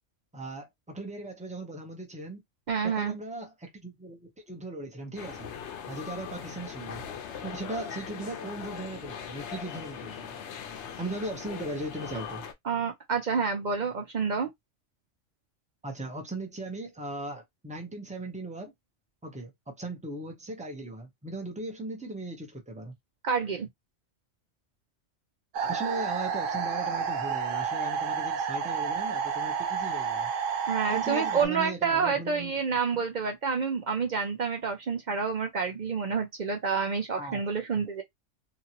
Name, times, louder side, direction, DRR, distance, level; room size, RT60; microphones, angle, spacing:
voice 1, 0.3-2.4 2.8-5.5 5.9-7.0 7.4-10.3 11.0-12.4 15.8-18.7 19.2-22.9 25.5-30.3 30.9-32.6 33.0-33.1 37.2-37.4, right 2 dB, 5° right, 0.7 m, -38 dB
voice 2, 2.7-3.1 12.6-14.5 23.2-23.7 30.7-38.0, right 5 dB, 55° right, 0.5 m, -28 dB
sound 1, 5.2-12.5, left 7 dB, 70° left, 0.9 m, -40 dB
sound 2, 25.5-31.5, right 6 dB, 80° right, 1.0 m, -30 dB
2.9 x 2.5 x 2.8 m
omnidirectional pair, 1.3 m